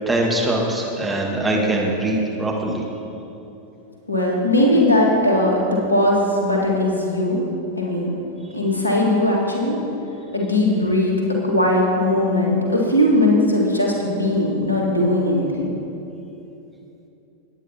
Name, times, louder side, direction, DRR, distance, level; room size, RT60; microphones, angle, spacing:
voice 1, 0.1-2.8, right 1 dB, 10° right, -3 dB, 1.6 m, -22 dB
voice 2, 4.1-7.4 7.8-8.1 8.5-9.8 10.3-15.6, left 1 dB, 80° left, -1 dB, 1.8 m, -19 dB
19.0 x 9.1 x 2.9 m, 2.9 s
figure-of-eight pair, 90°, 0 cm